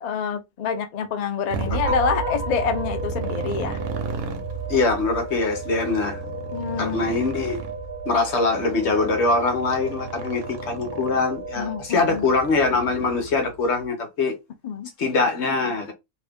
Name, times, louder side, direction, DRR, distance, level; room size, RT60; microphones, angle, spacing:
voice 1, 0.0-3.8 6.5-7.2 11.6-12.3 14.6-14.9, left 6 dB, 80° left, 0.3 m, -27 dB
Motorcycle, 1.5-13.6, right 5 dB, 75° right, 1.1 m, -34 dB
sound 1, 1.8-12.3, right 1 dB, 35° right, 1.2 m, -35 dB
voice 2, 4.7-6.2 6.8-7.6 8.1-14.4 15.0-15.9, left 3 dB, 55° left, 1.1 m, -23 dB
2.7 x 2.6 x 3.5 m
omnidirectional pair, 1.5 m